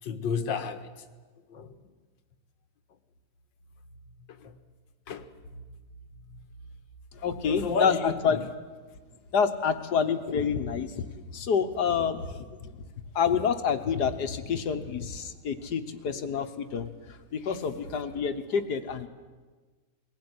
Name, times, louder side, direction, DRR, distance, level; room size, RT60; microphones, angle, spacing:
voice 1, 0.0-0.9 1.5-1.7 4.4-4.6 5.1-5.3 6.2-6.5 7.4-8.4, left 6 dB, 85° left, 9 dB, 2.0 m, -32 dB
voice 2, 7.1-8.4 9.3-12.9 13.2-19.1, left 6 dB, 65° left, 9 dB, 1.7 m, -28 dB
21.5 x 16.5 x 9.7 m, 1.4 s
omnidirectional pair, 1.9 m